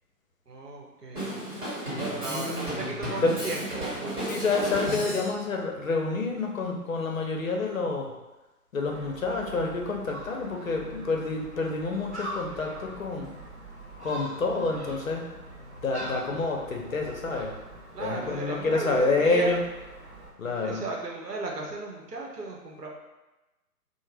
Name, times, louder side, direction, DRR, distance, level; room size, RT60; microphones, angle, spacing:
voice 1, 0.5-1.4 2.0-4.3 17.9-19.5 20.6-22.9, right 3 dB, 85° right, -1 dB, 0.8 m, -35 dB
Drum kit, 1.2-5.3, right 1 dB, 30° right, 1.1 m, -33 dB
voice 2, 2.3-2.7 3.2-3.5 4.2-8.1 8.7-13.4 14.0-15.4 15.8-17.6 18.0-19.6 20.4-20.9, left 3 dB, 60° left, 1 dB, 0.6 m, -28 dB
Gull seagull, 8.9-20.3, right 1 dB, 45° right, 0.6 m, -43 dB
2.5 x 2.0 x 3.2 m, 1.1 s
figure-of-eight pair, 145°, 47 cm